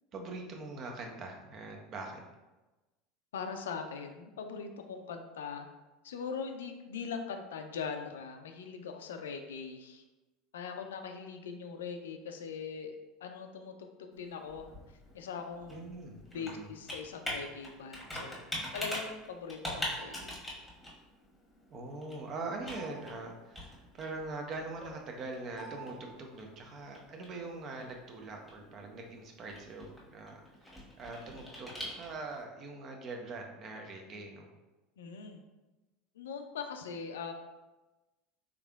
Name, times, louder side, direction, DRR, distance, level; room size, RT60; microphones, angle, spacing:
voice 1, 0.1-2.2 15.7-16.7 21.7-30.4 31.0-34.5, right 3 dB, 40° right, 2 dB, 0.6 m, -42 dB
voice 2, 3.3-5.7 6.0-10.0 10.5-13.0 13.2-14.7 15.1-15.8 16.3-18.4 18.7-20.4 35.0-35.4 36.2-37.3, left 6 dB, 75° left, 6 dB, 0.3 m, -41 dB
Computer keyboard, 14.1-32.4, left 1 dB, 5° left, 1.2 m, -44 dB
3.6 x 3.3 x 2.3 m, 1.1 s
figure-of-eight pair, 75°, 0 cm